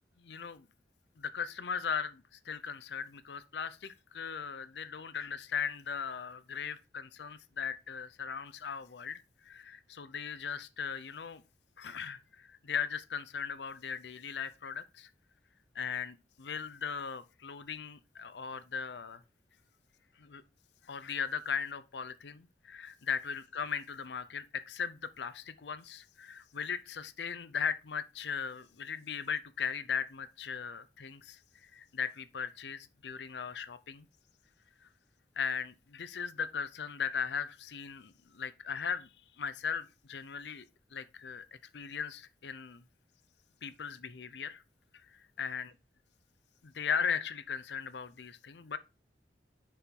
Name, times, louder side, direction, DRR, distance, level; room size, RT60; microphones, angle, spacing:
voice 1, 0.2-0.7 1.2-11.4 11.8-15.1 15.7-19.2 20.2-20.4 20.9-34.1 34.8-34.9 35.4-39.1 39.4-40.6 40.9-41.5 41.7-42.8 43.6-44.6 45.1-45.7 46.6-48.8, left 6 dB, 75° left, 0.6 m, -38 dB
10.5 x 4.5 x 3.6 m
head